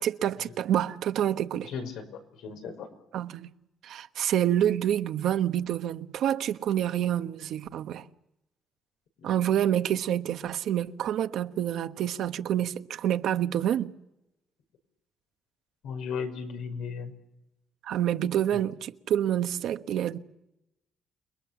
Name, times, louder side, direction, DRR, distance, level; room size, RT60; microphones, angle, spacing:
voice 1, 0.0-1.7 3.1-3.5 3.8-8.0 9.2-13.9 17.8-20.2, right 11 dB, 80° right, 1.2 m, -27 dB
voice 2, 1.6-2.9 15.8-17.1, left 6 dB, 90° left, 5.5 m, -36 dB
29.5 x 21.5 x 7.1 m
cardioid pair, 90°, 0 cm